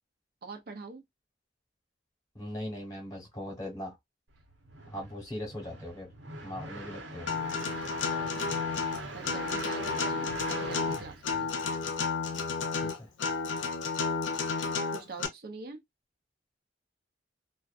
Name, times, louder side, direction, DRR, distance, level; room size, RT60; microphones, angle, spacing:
voice 1, 0.4-1.0 8.3-8.6 9.1-11.5 14.6-15.8, right 4 dB, 50° right, 0.6 m, -44 dB
voice 2, 2.3-4.0 4.9-6.1 6.4-7.3 12.8-13.1, left 1 dB, 20° left, 1.1 m, -39 dB
sound 1, 4.4-12.0, right 2 dB, 80° right, 1.0 m, -42 dB
Acoustic guitar, 7.3-15.3, left 5 dB, 80° left, 0.6 m, -32 dB
2.5 x 2.3 x 2.4 m
head